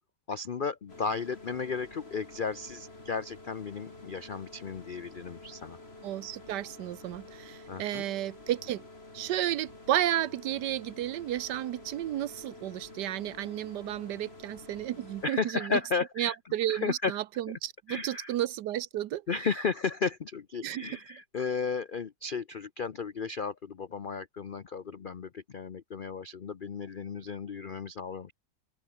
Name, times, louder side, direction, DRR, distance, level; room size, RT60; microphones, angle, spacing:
voice 1, 0.3-5.8 7.7-8.0 15.2-16.4 16.7-17.1 17.9-18.3 19.3-28.3, left 5 dB, 80° left, 0.4 m, -34 dB
sound 1, 0.9-15.3, left 2 dB, 30° left, 4.4 m, -49 dB
voice 2, 6.0-8.8 9.1-15.8 16.2-19.2 20.6-20.9, right 13 dB, 75° right, 1.3 m, -32 dB
open air
omnidirectional pair, 2.0 m